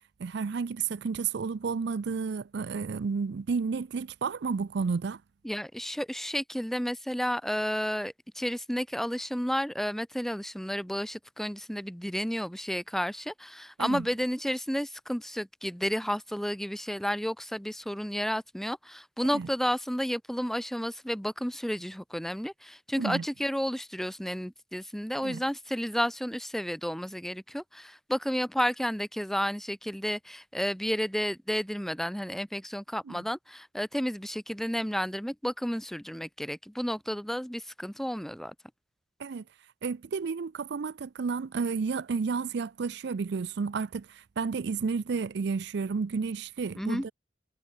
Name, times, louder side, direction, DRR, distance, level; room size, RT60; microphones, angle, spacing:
voice 1, 0.2-5.2 13.8-14.1 19.2-19.5 23.0-23.2 25.2-25.4 33.1-33.2 39.2-39.4 39.8-47.1, right 5 dB, 65° right, 0.4 m, -31 dB
voice 2, 5.4-38.5 46.8-47.0, equal, ahead, 1.4 m, -32 dB
head